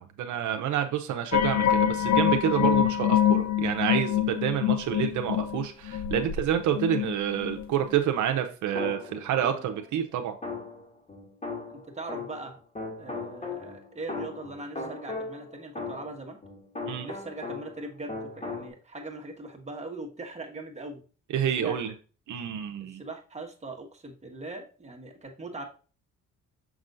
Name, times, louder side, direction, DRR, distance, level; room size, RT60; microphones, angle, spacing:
voice 1, 0.0-10.4 16.9-17.1 21.3-21.9 22.3-23.0, right 10 dB, 75° right, 6 dB, 0.8 m, -28 dB
sound 1, 1.3-7.7 7.9-8.0, left 10 dB, 70° left, 0.7 m, -25 dB
sound 2, 8.8-9.9 10.4-12.5 12.8-17.8 18.1-18.7, left 3 dB, 25° left, 2.4 m, -38 dB
voice 2, 11.7-12.6 13.0-16.4 17.0-21.0 21.6-21.8 22.8-25.6, right 2 dB, 20° right, 1 dB, 1.6 m, -40 dB
6.2 x 6.1 x 2.6 m, 0.37 s
cardioid pair, 90°, 30 cm